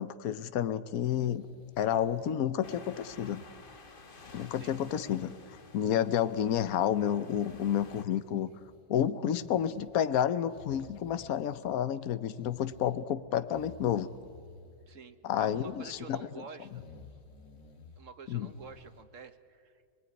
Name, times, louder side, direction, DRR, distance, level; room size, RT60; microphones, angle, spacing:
voice 1, 0.0-1.4 1.8-3.4 4.3-8.5 8.9-14.1 15.2-16.3 18.3-18.5, left 10 dB, 60° left, 13 dB, 1.2 m, -30 dB
sound 1, 1.1-2.6 3.0-3.9 4.3-5.8 6.1-6.8 7.4-8.9 9.3-10.0 10.4-12.0 12.3-13.0 13.5-14.9 15.3-16.1 16.6-18.1 18.5-19.0, left 3 dB, 85° left, 3.1 m, -56 dB
sound 2, 2.6-8.1, left 4 dB, 30° left, 1.5 m, -52 dB
voice 2, 14.9-16.7 18.0-19.9, right 5 dB, 50° right, 10 dB, 1.5 m, -49 dB
27.5 x 20.0 x 9.8 m, 2.2 s
omnidirectional pair, 1.9 m